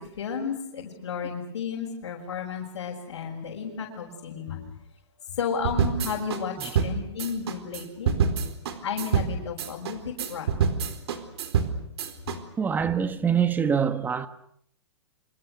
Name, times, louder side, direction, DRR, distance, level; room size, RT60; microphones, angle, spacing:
voice 1, 0.2-4.6 5.3-8.1 8.8-10.5, left 6 dB, 75° left, 6.3 m, -32 dB
sound 1, 5.6-12.4, right 6 dB, 65° right, 4.2 m, -27 dB
voice 2, 12.6-14.3, right 7 dB, 10° right, 1.1 m, -24 dB
29.5 x 26.0 x 6.7 m
hypercardioid pair, 145°, 15 cm